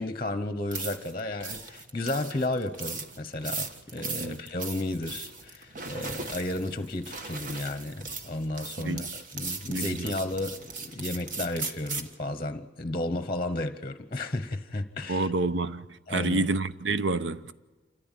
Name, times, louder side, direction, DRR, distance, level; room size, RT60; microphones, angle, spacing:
voice 1, 0.0-15.3 16.1-16.5, left 2 dB, 30° left, 0.9 m, -33 dB
sound 1, 0.7-12.1, right 4 dB, 45° right, 1.5 m, -38 dB
voice 2, 4.0-4.4 8.8-9.1 9.7-10.1 15.1-17.5, right 3 dB, 70° right, 0.8 m, -29 dB
27.5 x 14.5 x 9.1 m
head